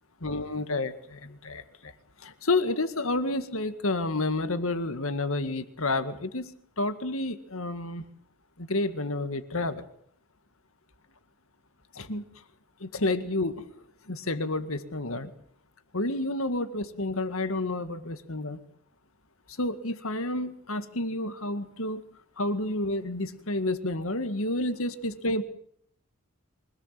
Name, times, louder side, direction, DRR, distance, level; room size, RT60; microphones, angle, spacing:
voice 1, 0.2-1.9 2.2-8.0 8.6-9.8 12.0-12.2 12.8-13.6 14.1-15.3 15.9-18.6 19.6-22.0 22.4-25.4, left 2 dB, 70° left, 10 dB, 2.0 m, -30 dB
24.5 x 18.0 x 7.7 m, 0.66 s
head